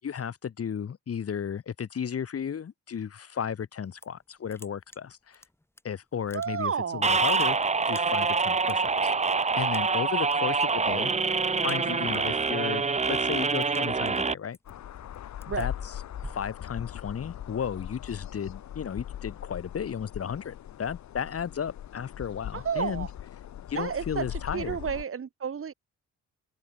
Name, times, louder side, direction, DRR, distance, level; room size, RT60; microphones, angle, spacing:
voice 1, 0.0-5.4 5.8-7.6 7.9-9.1 9.6-11.1 11.6-14.6 15.6-15.7 16.3-23.1 23.7-24.8, left 7 dB, 50° left, 5.4 m, -34 dB
sound 1, 3.7-4.2 4.5-5.8 6.1-6.8 7.1-9.1 9.7-10.4 10.7-11.0 11.3-12.3 12.7-17.3, left 1 dB, 10° left, 7.2 m, -48 dB
voice 2, 6.3-7.1 15.5-15.7 22.5-23.1 23.7-25.7, right 7 dB, 45° right, 4.7 m, -31 dB
sound 2, 7.0-14.3, right 4 dB, 20° right, 1.2 m, -26 dB
sound 3, 14.6-25.0, left 11 dB, 65° left, 3.2 m, -40 dB
open air
cardioid pair, 90°, 30 cm